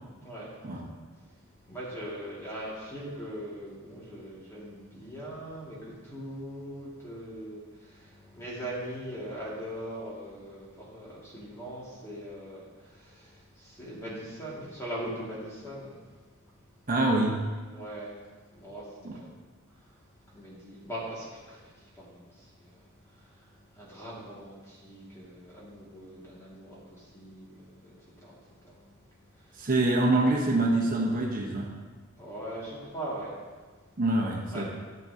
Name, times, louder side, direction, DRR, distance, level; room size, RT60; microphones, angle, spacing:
voice 1, 0.2-0.8 1.1-16.9 17.7-19.3 19.7-29.7 32.2-34.0 34.5-34.6, right 1 dB, 15° left, -7 dB, 2.1 m, -41 dB
voice 2, 16.9-17.4 19.0-19.1 29.6-31.7 34.0-34.6, right 2 dB, 40° right, -1 dB, 1.0 m, -25 dB
12.5 x 7.5 x 2.8 m, 1.4 s
head